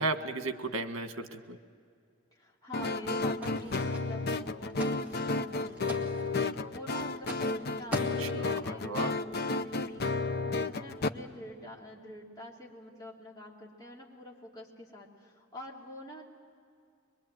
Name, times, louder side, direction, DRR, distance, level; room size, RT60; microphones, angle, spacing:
voice 1, 0.0-1.6 7.9-8.5 8.8-9.1, right 3 dB, 70° right, 8 dB, 1.5 m, -35 dB
voice 2, 2.3-16.2, left 1 dB, 20° left, -4 dB, 2.9 m, -47 dB
sound 1, 2.7-11.1, left 3 dB, 50° left, 0.7 m, -32 dB
sound 2, 3.4-4.4 4.6-5.2 5.5-6.4 7.2-7.5 7.9-8.5, equal, 5° right, 2.1 m, -40 dB
23.5 x 23.0 x 8.9 m, 2.3 s
head